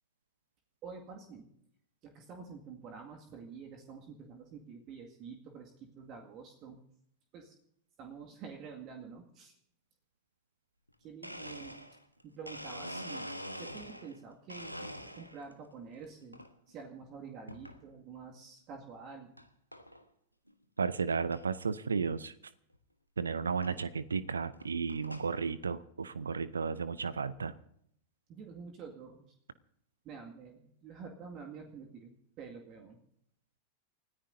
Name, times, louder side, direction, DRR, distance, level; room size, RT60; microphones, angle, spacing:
voice 1, 0.8-1.5 2.0-6.8 7.3-7.6 8.0-9.6 11.0-11.8 12.2-13.2 13.6-19.3 28.3-29.4 30.0-33.0, right 5 dB, 35° right, 3 dB, 2.0 m, -48 dB
Domestic sounds home sounds, 10.9-11.0 11.2-14.2 14.5-15.5 16.0-16.5 17.5-17.8 18.4-18.5 19.4-19.5 19.7-20.0 20.5-20.6 20.8-20.9 21.3-21.4 22.7-22.8 23.6-23.8 24.4-25.3, equal, 90° right, 1.3 m, -44 dB
voice 2, 20.8-22.4 23.2-27.5, right 5 dB, 75° right, 18 dB, 0.6 m, -33 dB
29.5 x 14.0 x 2.7 m, 0.71 s
figure-of-eight pair, 90°, 0 cm